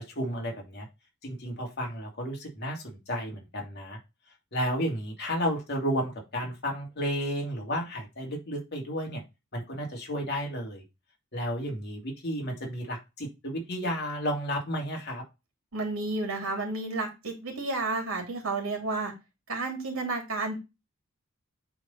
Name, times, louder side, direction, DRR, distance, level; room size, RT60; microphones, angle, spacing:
voice 1, 0.1-0.9 1.2-4.0 4.5-9.2 9.5-10.8 11.3-15.2, equal, 55° left, 0 dB, 2.9 m, -32 dB
voice 2, 15.7-19.1 19.5-20.6, right 3 dB, 75° right, 2 dB, 3.0 m, -31 dB
8.9 x 4.1 x 4.2 m, 0.24 s
head